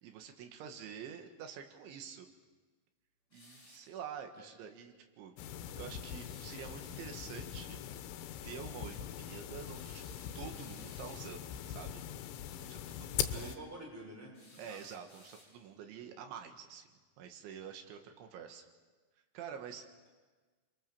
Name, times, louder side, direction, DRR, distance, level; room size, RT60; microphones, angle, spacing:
voice 1, 0.0-2.3 3.3-5.4 5.8-7.8 8.4-12.0 12.6-13.6 14.6-16.9 17.2-18.7 19.3-19.9, right 8 dB, 75° right, 5 dB, 4.0 m, -47 dB
sound 1, 3.3-3.9 6.1-6.7 9.7-11.3 14.3-15.8, left 2 dB, 25° left, 7.5 m, -60 dB
sound 2, 5.4-13.6, left 10 dB, 90° left, 3.5 m, -42 dB
voice 2, 13.3-14.9, right 1 dB, 5° right, -1 dB, 5.3 m, -49 dB
28.0 x 23.0 x 7.1 m, 1.4 s
omnidirectional pair, 5.5 m